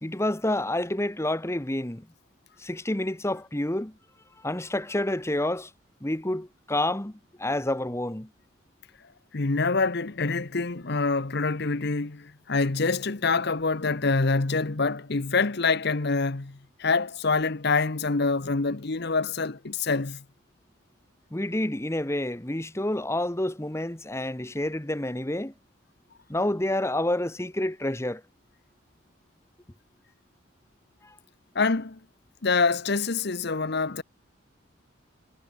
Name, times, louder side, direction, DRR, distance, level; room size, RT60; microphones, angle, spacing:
voice 1, 0.0-2.1 2.6-3.9 4.4-5.7 6.0-8.3 21.3-25.5 26.3-28.2 31.0-31.1, left 1 dB, 15° left, 1.2 m, -28 dB
voice 2, 9.3-20.2 31.5-32.0 32.4-34.0, left 4 dB, 55° left, 1.0 m, -26 dB
head